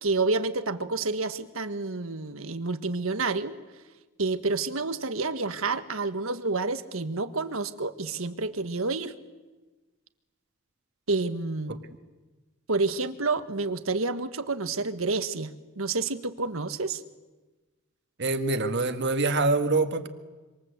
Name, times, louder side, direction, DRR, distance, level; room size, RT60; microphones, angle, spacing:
voice 1, 0.0-3.6 4.2-9.2 11.1-11.8 12.7-17.0, right 3 dB, 85° right, 10 dB, 1.7 m, -29 dB
voice 2, 18.2-20.1, right 3 dB, 60° right, 7 dB, 1.8 m, -25 dB
26.5 x 26.0 x 8.2 m, 1.2 s
head